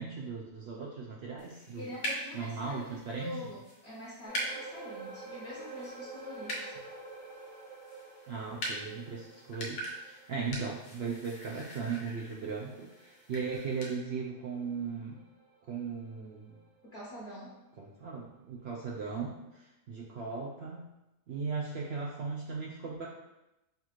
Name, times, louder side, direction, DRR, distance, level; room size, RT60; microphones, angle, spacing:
voice 1, 0.0-1.8 2.3-3.4 8.3-15.2 15.6-16.6 17.8-20.9 21.3-23.1, right 5 dB, 75° right, -2 dB, 0.6 m, -37 dB
sound 1, 1.4-14.0, equal, 90° left, 1.4 m, -43 dB
voice 2, 1.8-6.7 16.8-17.6, left 1 dB, 50° left, -6 dB, 1.0 m, -45 dB
sound 2, 4.3-17.0 17.3-17.5 18.0-18.1, right 3 dB, 40° right, 0.7 m, -50 dB
5.7 x 2.4 x 3.1 m, 0.93 s
omnidirectional pair, 1.6 m